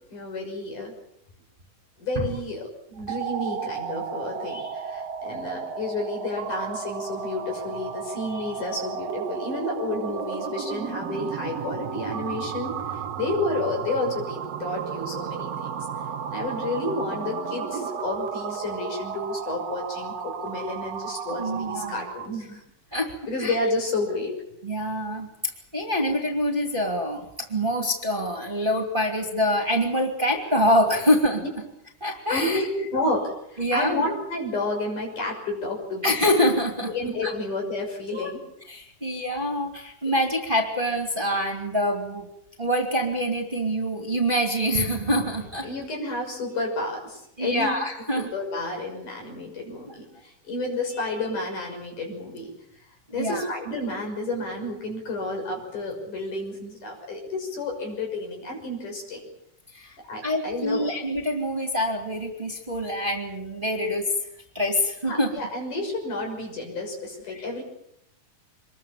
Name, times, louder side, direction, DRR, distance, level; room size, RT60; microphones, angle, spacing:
voice 1, 0.1-0.9 2.0-15.9 16.3-22.6 23.3-24.4 32.3-36.2 36.9-38.4 45.6-52.5 53.1-59.2 60.1-61.0 65.1-67.6, left 2 dB, 70° left, 2 dB, 7.7 m, -31 dB
sound 1, 3.0-22.4, right 7 dB, 60° right, 2.0 m, -33 dB
voice 2, 21.4-22.0 22.9-23.1 23.4-23.6 24.6-31.4 32.0-32.7 33.6-34.0 36.0-36.9 37.2-37.3 38.1-38.3 38.7-42.3 42.6-45.7 47.4-48.3 49.9-50.0 53.1-53.5 59.7-59.9 60.2-64.0 64.5-65.3 67.3-67.4, equal, 15° right, 1 dB, 2.6 m, -25 dB
25.5 x 21.5 x 7.3 m, 0.79 s
omnidirectional pair, 3.7 m